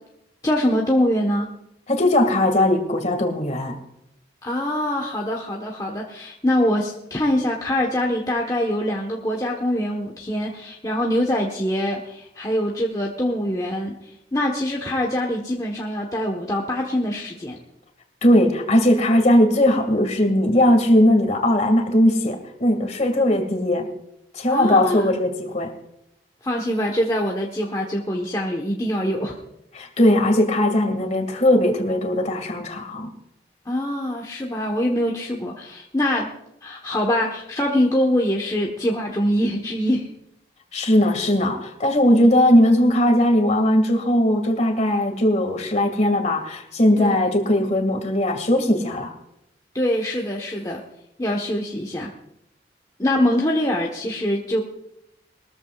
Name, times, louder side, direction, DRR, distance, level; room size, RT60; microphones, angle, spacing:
voice 1, 0.4-1.5 4.4-17.6 24.5-25.0 26.4-29.4 33.6-36.3 36.6-40.1 47.0-47.3 49.7-50.8 51.2-52.1 53.0-54.6, left 1 dB, 20° left, -1 dB, 1.2 m, -24 dB
voice 2, 1.9-3.8 18.2-23.9 24.3-25.7 29.7-33.1 40.7-49.2, left 1 dB, 40° left, 4 dB, 2.1 m, -19 dB
21.5 x 14.0 x 2.4 m, 0.81 s
head